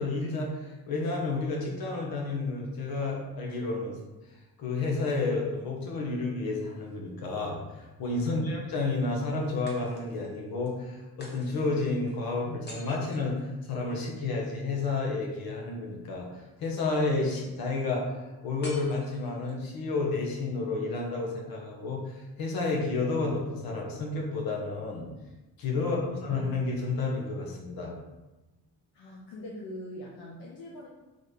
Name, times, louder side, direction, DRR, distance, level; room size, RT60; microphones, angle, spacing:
voice 1, 0.0-3.9 4.6-16.3 16.6-18.1 18.4-22.0 22.4-25.1 25.6-27.9, left 3 dB, 65° left, -2 dB, 1.3 m, -31 dB
sound 1, 6.6-7.6 9.7-10.4 11.2-14.0 18.6-19.7, left 1 dB, 25° left, 0.9 m, -50 dB
voice 2, 25.7-26.2 28.9-30.9, left 1 dB, 85° left, -3 dB, 0.9 m, -43 dB
4.1 x 3.8 x 3.3 m, 1.1 s
cardioid pair, 145°, 39 cm